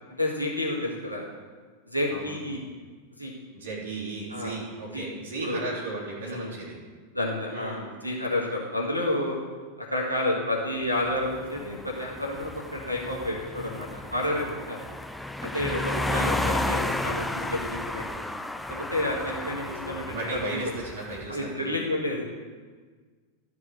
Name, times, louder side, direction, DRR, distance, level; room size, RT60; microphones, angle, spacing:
voice 1, 0.2-1.2 1.9-2.6 3.2-3.3 4.3-4.6 4.9-5.1 5.4-5.6 6.3-6.5 7.1-9.4 9.8-14.8 15.4-18.3 18.7-20.7 21.3-22.3, left 1 dB, 90° left, -3 dB, 1.9 m, -30 dB
voice 2, 3.5-6.8 7.5-7.9 15.9-16.5 19.4-21.8, right 2 dB, 60° right, -5 dB, 3.5 m, -36 dB
sound 1, 11.0-21.3, left 1 dB, 5° left, 0.4 m, -33 dB
12.5 x 4.9 x 7.5 m, 1.5 s
figure-of-eight pair, 90°, 0 cm